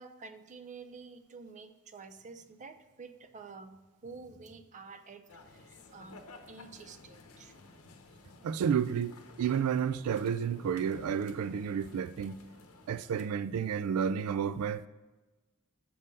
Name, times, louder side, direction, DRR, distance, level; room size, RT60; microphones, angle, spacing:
voice 1, 0.0-7.5, right 4 dB, 35° right, 0.5 m, -49 dB
sound 1, 5.3-13.3, left 3 dB, 75° left, 0.8 m, -54 dB
voice 2, 8.4-12.4 12.9-14.8, right 7 dB, 90° right, 0.3 m, -31 dB
6.8 x 5.4 x 5.3 m
head